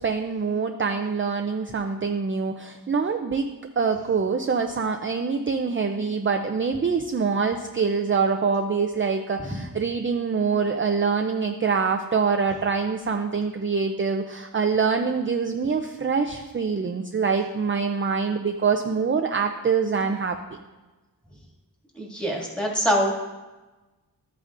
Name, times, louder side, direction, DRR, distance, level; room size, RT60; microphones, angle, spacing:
voice 1, 0.0-3.5 3.8-20.4, right 5 dB, 35° right, 4 dB, 0.5 m, -25 dB
voice 2, 21.9-23.1, equal, 5° left, -3 dB, 2.1 m, -24 dB
13.0 x 8.8 x 2.6 m, 1.2 s
wide cardioid pair, 100°, 37 cm